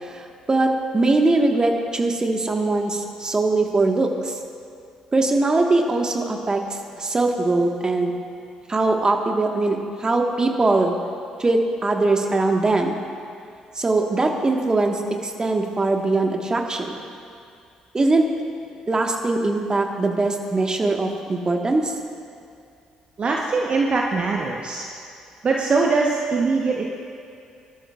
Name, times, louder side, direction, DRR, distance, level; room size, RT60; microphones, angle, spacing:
voice 1, 0.0-4.4 5.1-6.6 7.0-8.1 8.7-10.9 11.4-13.0 13.7-17.0 17.9-18.3 18.9-21.9, right 2 dB, 25° right, 3 dB, 1.5 m, -21 dB
voice 2, 23.2-24.9 25.4-26.9, right 4 dB, 40° right, -1 dB, 1.1 m, -22 dB
23.5 x 12.5 x 2.4 m, 2.4 s
figure-of-eight pair, 45°, 3 cm